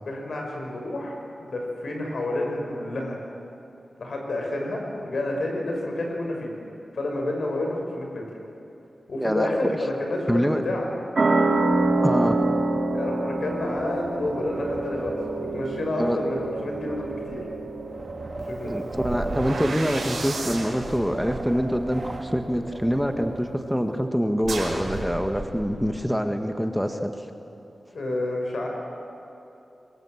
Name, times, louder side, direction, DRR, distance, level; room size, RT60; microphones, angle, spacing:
voice 1, 0.1-3.2 4.0-6.5 6.9-8.2 9.1-10.9 12.9-17.4 18.5-18.9 27.9-28.7, left 1 dB, 75° left, 1 dB, 5.7 m, -29 dB
voice 2, 9.2-9.8 10.3-10.6 12.0-12.4 16.0-16.2 18.6-27.3, equal, ahead, 6 dB, 1.4 m, -25 dB
sound 1, 11.2-18.4, right 2 dB, 60° right, 2.6 m, -26 dB
Wind, 11.3-23.9, right 2 dB, 40° right, 2.0 m, -38 dB
sound 2, 17.3-17.4 18.9-23.0 24.4-25.9, right 3 dB, 85° right, 5.2 m, -34 dB
24.5 x 20.5 x 7.8 m, 2.9 s
wide cardioid pair, 75°, 0 cm